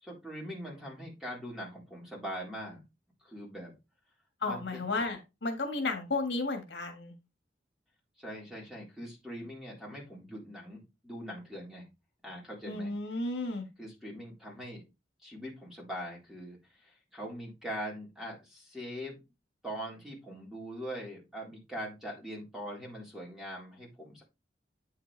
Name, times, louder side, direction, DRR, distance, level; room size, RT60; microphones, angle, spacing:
voice 1, 0.0-2.8 3.2-3.7 4.4-4.8 8.2-11.9 12.2-12.9 13.8-14.8 15.2-19.2 19.6-24.2, equal, 5° right, -3 dB, 3.9 m, -42 dB
voice 2, 4.4-7.1 12.7-13.6, left 3 dB, 70° left, 4 dB, 1.7 m, -33 dB
8.8 x 6.6 x 3.3 m, 0.25 s
head